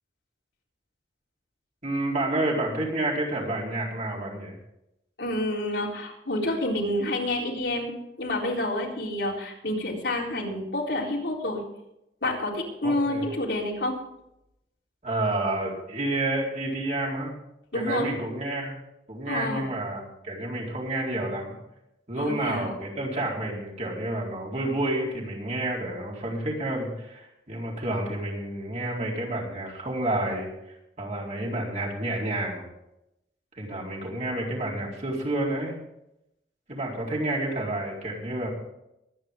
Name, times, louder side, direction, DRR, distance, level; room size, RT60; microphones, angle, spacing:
voice 1, 1.8-4.6 12.8-13.2 15.0-17.3 17.7-18.8 19.1-21.6 22.1-30.5 31.0-32.7 33.5-35.7 36.7-38.5, right 1 dB, 40° right, -3 dB, 4.2 m, -29 dB
voice 2, 5.2-11.6 12.2-14.0 17.7-18.1 19.3-19.6 22.2-22.7, left 1 dB, 75° left, -2 dB, 4.0 m, -28 dB
23.0 x 9.5 x 3.8 m, 0.84 s
head